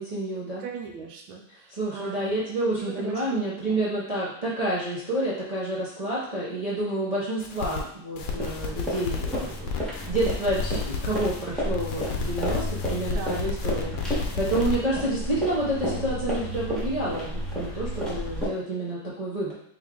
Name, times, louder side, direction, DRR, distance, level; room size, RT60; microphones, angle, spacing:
voice 1, 0.0-0.6 1.8-19.5, right 1 dB, 60° right, -8 dB, 0.4 m, -29 dB
voice 2, 0.6-3.2 3.6-3.9 13.0-14.1, right 5 dB, 85° right, 2 dB, 1.4 m, -40 dB
sound 1, 7.4-7.8 8.2-11.4 11.7-14.8, left 5 dB, 80° left, 1.3 m, -32 dB
sound 2, 8.2-18.5, equal, ahead, 1.0 m, -32 dB
3.4 x 3.3 x 3.7 m, 0.72 s
omnidirectional pair, 2.1 m